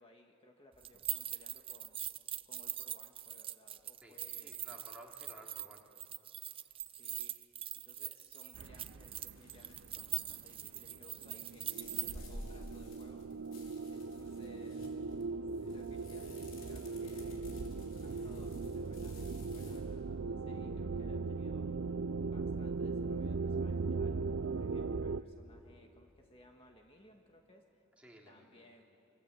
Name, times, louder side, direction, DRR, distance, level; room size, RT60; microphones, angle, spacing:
voice 1, 0.0-2.0 2.4-4.8 6.9-7.3 7.8-13.3 13.6-14.9 15.6-17.5 18.0-19.2 19.5-21.6 22.2-24.1 24.5-27.8 28.3-28.8, left 1 dB, 30° left, 2 dB, 1.7 m, -62 dB
sound 1, 0.8-12.1, right 11 dB, 30° right, 0.5 m, -42 dB
voice 2, 4.4-5.8 28.0-28.6, right 1 dB, 5° right, -2 dB, 3.3 m, -55 dB
sound 2, 6.4-7.4 9.1-10.7 11.1-19.8, left 1 dB, 75° left, 4.8 m, -54 dB
sound 3, 8.5-25.2, right 4 dB, 80° right, 0.6 m, -39 dB
26.5 x 25.0 x 8.4 m, 2.9 s
head